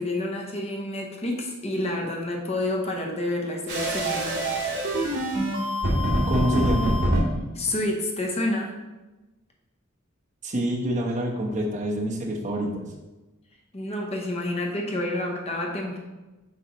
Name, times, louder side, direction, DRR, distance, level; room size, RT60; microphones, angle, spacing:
voice 1, 0.0-4.5 7.5-8.7 13.7-16.0, left 1 dB, 30° left, 0 dB, 0.9 m, -29 dB
sound 1, 3.7-7.2, right 1 dB, 60° right, 2.0 m, -25 dB
voice 2, 6.3-7.0 10.4-12.8, equal, 35° right, -2 dB, 1.2 m, -26 dB
7.4 x 4.9 x 3.1 m, 1.1 s
head